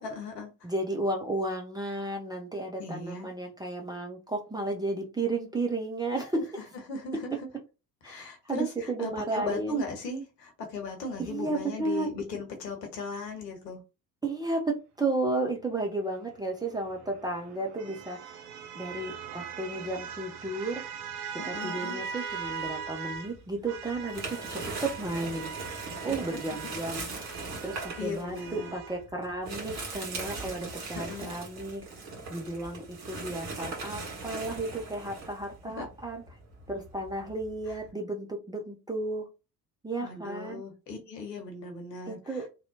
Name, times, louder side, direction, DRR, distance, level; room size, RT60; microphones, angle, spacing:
voice 1, 0.0-0.7 2.8-3.3 6.2-6.4 6.9-7.5 8.0-13.8 21.4-22.0 26.0-26.6 28.0-28.7 30.9-31.3 35.6-35.9 37.7-37.8 40.0-42.5, left 2 dB, 75° left, 0.9 m, -37 dB
voice 2, 0.6-6.5 8.0-9.8 11.2-12.1 14.2-18.2 18.7-20.8 21.4-24.4 24.6-25.5 26.0-27.1 27.6-31.8 32.3-36.2 36.7-39.3 39.8-40.6 42.1-42.5, right 2 dB, 10° right, 0.4 m, -33 dB
sound 1, 16.7-23.3 23.7-29.0, right 7 dB, 65° right, 0.6 m, -40 dB
sound 2, 22.4-23.4 23.8-37.9, right 3 dB, 50° right, 1.5 m, -40 dB
2.7 x 2.1 x 2.7 m
figure-of-eight pair, 55°, 49 cm